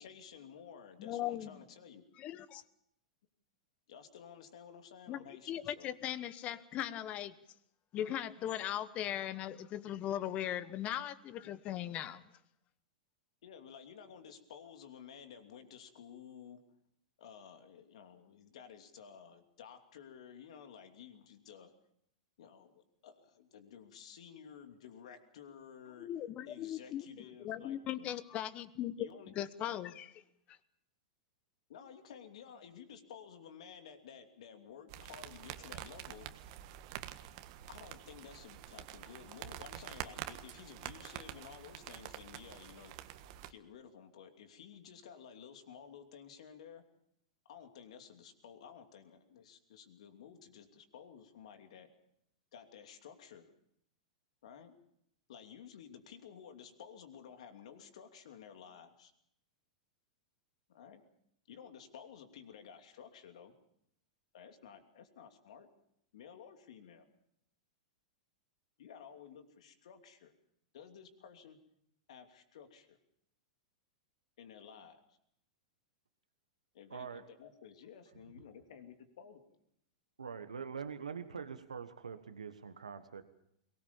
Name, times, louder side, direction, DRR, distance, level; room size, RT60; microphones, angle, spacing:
voice 1, 0.0-2.1 3.9-5.9 13.4-16.6 17.2-21.7 22.4-26.1 26.4-28.1 29.0-29.3 31.7-36.3 37.7-42.9 43.5-46.8 47.4-51.9 52.5-53.5 54.4-54.7 55.3-59.1 60.7-61.0 61.5-63.5 64.3-65.7 66.1-67.1 68.8-70.3 70.7-71.6 72.1-73.0 74.4-75.2 76.7-79.4, left 7 dB, 70° left, 7 dB, 2.8 m, -53 dB
voice 2, 1.0-1.6 2.2-2.6 5.1-7.3 7.9-12.2 26.0-27.0 27.4-29.1 29.3-30.2 30.5-30.6, left 11 dB, 35° left, 16 dB, 1.2 m, -39 dB
sound 1, 34.9-43.5, right 13 dB, 55° right, 1.5 m, -47 dB
voice 3, 76.9-77.3 80.2-83.2, right 6 dB, 90° right, 10 dB, 1.3 m, -44 dB
23.0 x 19.0 x 7.2 m, 0.74 s
hypercardioid pair, 105°, 4 cm